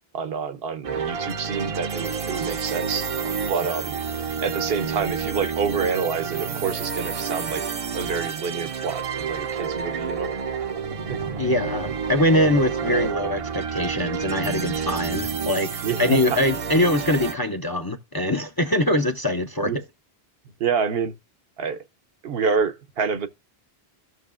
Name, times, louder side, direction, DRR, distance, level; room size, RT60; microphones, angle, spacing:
voice 1, 0.1-3.1 3.5-4.0 4.4-7.6 7.9-10.3 10.9-11.2 15.8-16.4 19.6-19.8 20.6-21.1 21.6-21.8 22.2-23.3, right 5 dB, 70° right, 1.0 m, -27 dB
sound 1, 0.8-17.3, right 6 dB, 45° right, 0.5 m, -29 dB
voice 2, 11.4-15.7 16.0-19.7, left 1 dB, 30° left, 0.5 m, -23 dB
14.0 x 6.4 x 2.5 m
omnidirectional pair, 1.0 m